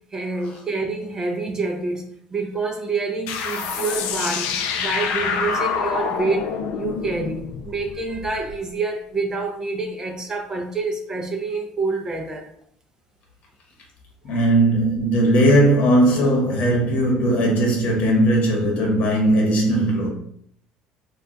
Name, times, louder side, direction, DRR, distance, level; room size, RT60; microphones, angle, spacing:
voice 1, 0.1-2.0 2.3-6.5 6.7-12.5 14.3-14.5, right 3 dB, 25° right, 0.4 m, -27 dB
sound 1, 3.3-8.5, left 6 dB, 80° left, 0.3 m, -27 dB
voice 2, 14.2-20.1, right 1 dB, 55° left, 1.0 m, -18 dB
2.2 x 2.2 x 3.8 m
supercardioid pair, 110°, 3 cm